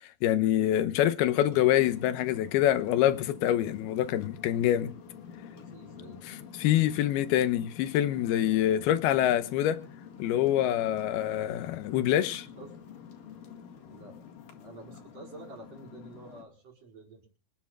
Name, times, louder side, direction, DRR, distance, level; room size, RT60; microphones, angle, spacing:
voice 1, 0.2-4.9 6.3-9.8 10.2-12.5, left 12 dB, 85° left, 2.9 m, -26 dB
sound 1, 1.2-16.4, left 7 dB, 65° left, 3.5 m, -47 dB
voice 2, 5.5-6.2 12.6-12.8 13.4-13.5 13.9-14.2 14.6-17.3, right 2 dB, 40° right, 6.1 m, -49 dB
27.0 x 9.2 x 3.8 m
omnidirectional pair, 4.4 m